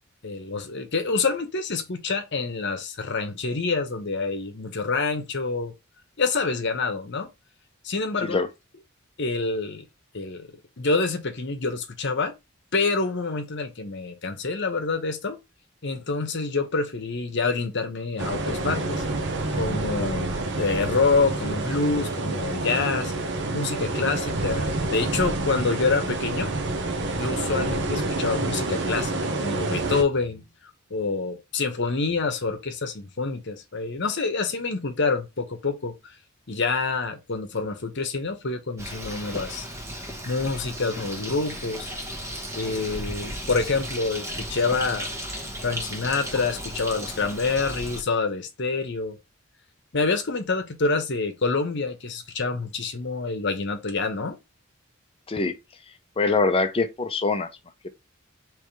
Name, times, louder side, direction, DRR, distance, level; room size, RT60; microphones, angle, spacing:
voice 1, 0.2-5.7 6.2-7.3 7.8-8.4 9.2-9.8 10.1-10.5 10.8-12.3 12.7-15.4 15.8-23.1 23.5-26.5 27.1-30.4 30.9-36.2 36.5-39.7 40.2-41.9 42.5-45.1 45.6-49.2 49.9-54.4, left 4 dB, 55° left, 1.0 m, -27 dB
sound 1, 18.2-30.0, right 2 dB, 55° right, 0.8 m, -28 dB
Bird, 38.8-48.0, equal, 15° right, 1.1 m, -35 dB
voice 2, 56.2-57.5, left 3 dB, 25° left, 0.6 m, -23 dB
3.5 x 3.2 x 4.5 m
head